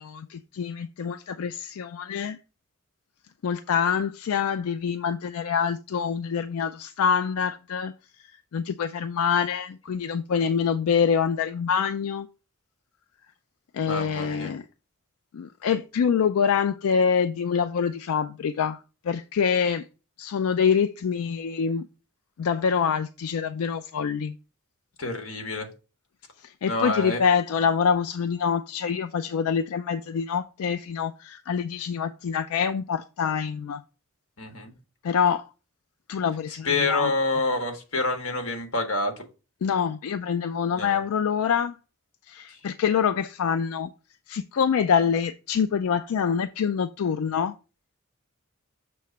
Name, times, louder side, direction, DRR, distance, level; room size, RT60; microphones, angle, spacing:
voice 1, 0.0-2.4 3.4-7.9 8.5-12.3 13.7-14.7 15.3-19.8 20.2-21.9 22.4-24.3 26.4-33.8 35.0-35.5 36.1-37.1 39.6-41.8 42.3-43.9 44.3-47.6, left 7 dB, 90° left, 0.4 m, -25 dB
voice 2, 13.9-14.5 25.0-25.7 26.7-27.2 34.4-34.7 36.6-39.2 40.7-41.0, left 2 dB, 65° left, 1.5 m, -27 dB
6.6 x 3.1 x 5.7 m
head